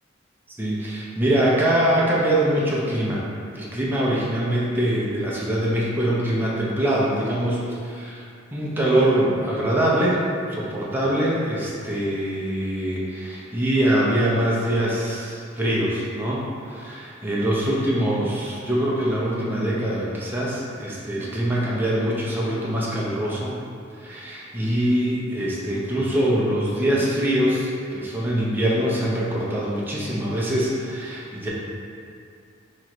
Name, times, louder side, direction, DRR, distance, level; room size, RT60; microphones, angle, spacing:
voice 1, 0.6-3.2 3.5-8.3 8.5-23.5 24.0-31.5, right 1 dB, 10° right, -6 dB, 0.5 m, -23 dB
2.9 x 2.5 x 4.2 m, 2.4 s
head